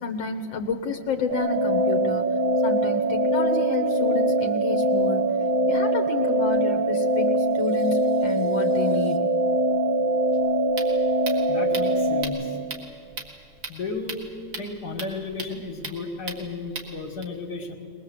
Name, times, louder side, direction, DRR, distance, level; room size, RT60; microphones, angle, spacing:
voice 1, 0.0-2.3 2.6-5.4 5.7-9.2, left 5 dB, 85° left, 3 dB, 2.0 m, -30 dB
sound 1, 1.3-12.2, right 2 dB, 85° right, 2.4 m, -22 dB
sound 2, 10.3-17.2, right 3 dB, 55° right, 2.6 m, -39 dB
voice 2, 11.3-12.6 13.7-14.3 14.6-17.8, left 3 dB, 60° left, 2 dB, 2.5 m, -34 dB
22.0 x 20.5 x 8.0 m, 2.5 s
omnidirectional pair, 2.0 m